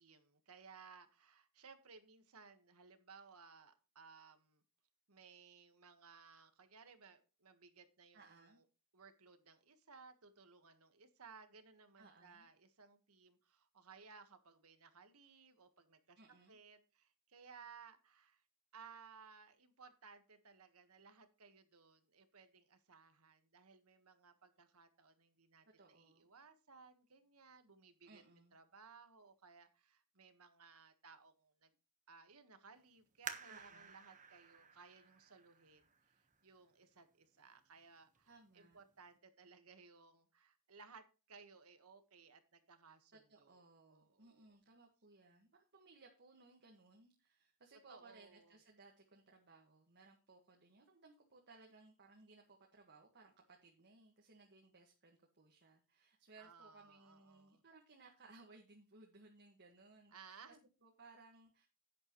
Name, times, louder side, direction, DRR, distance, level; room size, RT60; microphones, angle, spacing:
voice 1, 0.0-4.6 5.1-8.6 8.9-16.2 16.5-18.4 18.7-28.2 28.5-31.7 32.1-35.8 36.1-43.6 43.9-44.6 47.7-48.6 56.4-57.6 60.1-60.6, right 5 dB, 70° right, 9 dB, 1.5 m, -61 dB
voice 2, 8.1-8.6 12.0-12.5 16.1-16.6 25.8-26.3 28.0-28.6 33.5-34.0 38.3-38.8 43.1-60.4 60.8-61.7, right 3 dB, 50° right, 1 dB, 1.7 m, -63 dB
sound 1, 33.2-36.6 37.2-37.3 38.0-38.3 38.7-38.8, right 6 dB, 35° right, 1.3 m, -52 dB
10.5 x 9.6 x 3.1 m, 0.31 s
head